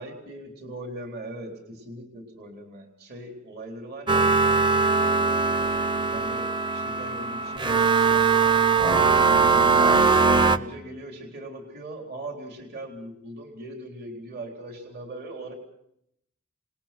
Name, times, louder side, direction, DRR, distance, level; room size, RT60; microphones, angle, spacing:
voice 1, 0.0-4.3 6.0-8.3 10.4-15.5, right 1 dB, 50° right, 2 dB, 3.9 m, -40 dB
sound 1, 4.1-10.6, right 4 dB, 25° right, 0.9 m, -21 dB
27.5 x 20.5 x 6.0 m, 0.76 s
head